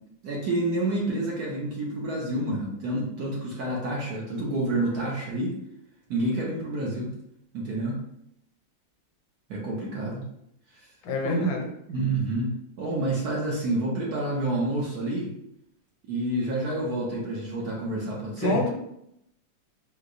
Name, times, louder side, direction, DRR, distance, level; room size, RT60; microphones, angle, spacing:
voice 1, 0.2-5.6 6.1-7.1 7.5-8.0 9.5-10.3 10.8-10.9 11.2-11.5 11.9-15.3 16.1-18.6, right 1 dB, 65° right, -3 dB, 1.1 m, -28 dB
voice 2, 11.0-11.7 18.4-18.7, left 1 dB, 85° left, 2 dB, 1.4 m, -26 dB
4.5 x 2.0 x 2.5 m, 0.77 s
omnidirectional pair, 2.1 m